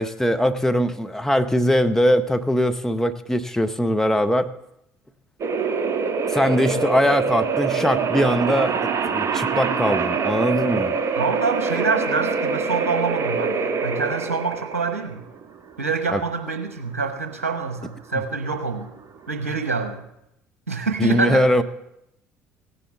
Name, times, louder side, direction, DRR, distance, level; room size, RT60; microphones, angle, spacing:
voice 1, 0.0-4.5 6.3-11.0 16.1-16.2 21.0-21.6, equal, 5° left, 7 dB, 0.9 m, -21 dB
sound 1, 5.4-20.0, right 5 dB, 40° right, 1.4 m, -25 dB
voice 2, 11.2-15.2 15.8-18.9 19.3-20.0 20.7-21.5, right 4 dB, 85° right, 6 dB, 1.0 m, -26 dB
16.5 x 10.0 x 3.5 m, 0.80 s
figure-of-eight pair, 60°, 7 cm